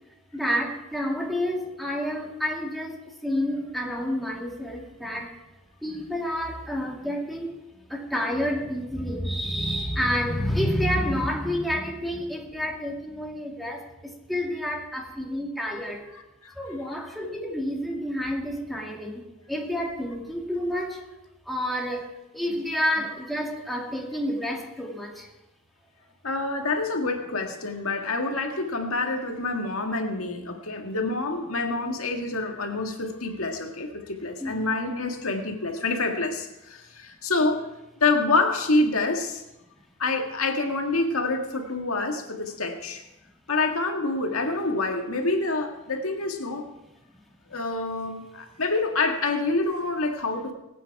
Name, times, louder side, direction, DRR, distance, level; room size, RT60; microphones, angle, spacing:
voice 1, 0.3-2.9 3.2-5.3 5.8-7.5 7.9-13.8 14.3-16.0 16.6-19.2 19.5-21.0 21.5-22.0 22.3-25.1 34.4-34.6, equal, ahead, -1 dB, 2.2 m, -29 dB
voice 2, 16.1-16.5 22.5-22.6 26.2-37.7 38.0-39.4 40.0-43.0 43.5-46.7 47.5-50.5, left 3 dB, 80° left, 3 dB, 1.8 m, -27 dB
21.5 x 9.2 x 4.7 m, 0.95 s
head